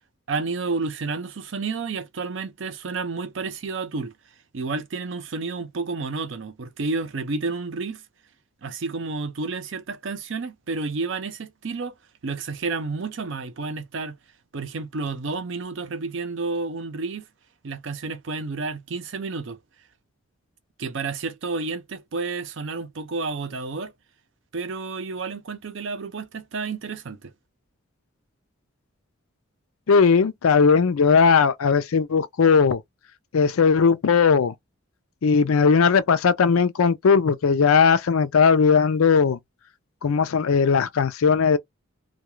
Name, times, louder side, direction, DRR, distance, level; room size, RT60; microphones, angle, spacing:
voice 1, 0.3-4.1 4.5-8.0 8.6-11.9 12.2-14.2 14.5-17.2 17.6-19.6 20.8-23.9 24.5-27.3, right 4 dB, 60° right, 0.5 m, -30 dB
voice 2, 29.9-32.8 33.3-34.5 35.2-39.4 40.0-41.6, left 5 dB, 85° left, 0.5 m, -18 dB
2.3 x 2.2 x 3.0 m
head